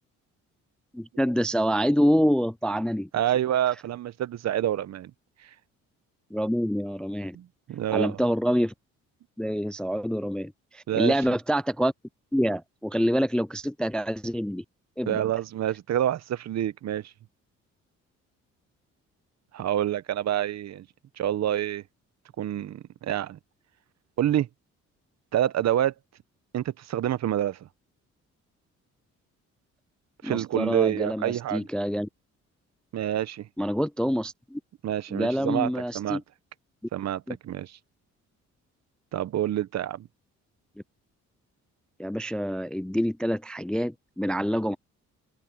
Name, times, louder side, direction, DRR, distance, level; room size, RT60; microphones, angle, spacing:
voice 1, 0.9-3.1 6.3-7.4 7.9-8.7 9.4-11.9 12.3-14.6 15.0-15.2 30.2-32.1 33.6-34.6 35.1-36.2 37.3-37.4 42.0-44.8, equal, 5° left, 0.3 m, -26 dB
voice 2, 3.1-5.1 5.4-5.5 7.3-8.2 10.9-11.1 15.1-17.1 19.5-20.9 21.2-21.8 22.4-23.4 24.2-24.5 25.3-25.9 26.5-27.7 30.2-31.7 32.9-33.5 34.8-35.7 35.9-36.2 36.9-37.7 39.1-40.1, right 11 dB, 60° right, 0.9 m, -27 dB
open air
cardioid pair, 90°, 30 cm